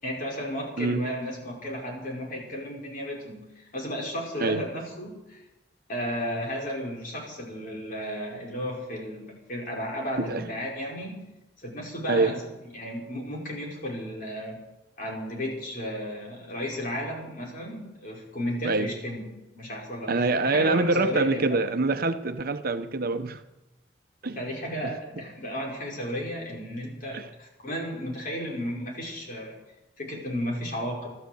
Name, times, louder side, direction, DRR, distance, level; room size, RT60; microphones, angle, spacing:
voice 1, 0.0-5.4 5.9-11.2 11.6-14.6 15.0-19.2 19.5-21.8 24.3-29.6 30.0-31.1, equal, 50° left, -2 dB, 5.2 m, -34 dB
voice 2, 0.8-1.1 4.4-4.6 10.2-10.4 12.1-12.3 18.6-18.9 20.1-23.4 24.2-24.4 24.8-24.9 27.1-27.2, right 3 dB, 55° right, 9 dB, 0.8 m, -25 dB
13.0 x 13.0 x 8.0 m, 1.0 s
head